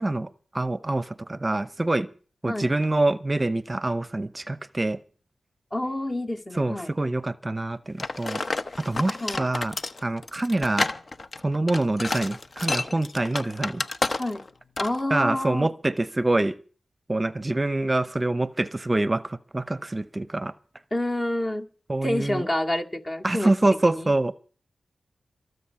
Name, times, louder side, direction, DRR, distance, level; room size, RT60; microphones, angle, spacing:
voice 1, 0.0-2.1 2.4-5.0 6.6-8.4 8.8-9.7 10.0-10.9 11.4-13.8 15.1-16.6 17.1-20.5 21.9-22.5 23.2-24.3, right 2 dB, 30° right, 14 dB, 0.7 m, -25 dB
voice 2, 5.7-6.9 9.2-9.5 14.2-14.4 14.8-15.7 20.9-21.7 22.0-23.5 23.8-24.1, left 1 dB, 35° left, 2 dB, 2.1 m, -28 dB
sound 1, 8.0-14.5 14.8-15.0, left 3 dB, 50° left, 0.9 m, -30 dB
23.5 x 8.0 x 5.8 m, 0.41 s
cardioid pair, 45°, 0 cm